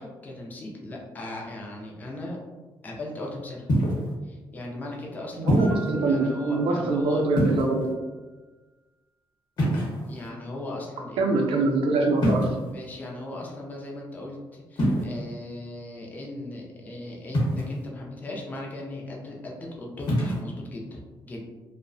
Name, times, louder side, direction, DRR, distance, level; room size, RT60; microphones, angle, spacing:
voice 1, 0.0-2.4 2.8-3.7 4.2-7.3 10.0-11.7 12.7-21.5, left 2 dB, 20° left, -2 dB, 0.4 m, -38 dB
sound 1, 3.7-4.1 5.5-5.9 7.3-7.9 9.6-10.3 12.2-12.7 14.8-15.0 17.3-17.9 20.0-20.4, equal, 55° left, 0.9 m, -24 dB
voice 2, 5.4-7.9 11.2-12.5, right 3 dB, 80° right, 1 dB, 0.4 m, -24 dB
Mallet percussion, 5.6-8.1, right 2 dB, 85° left, 0.6 m, -45 dB
2.6 x 2.0 x 2.5 m, 1.2 s
cardioid pair, 180°, 9 cm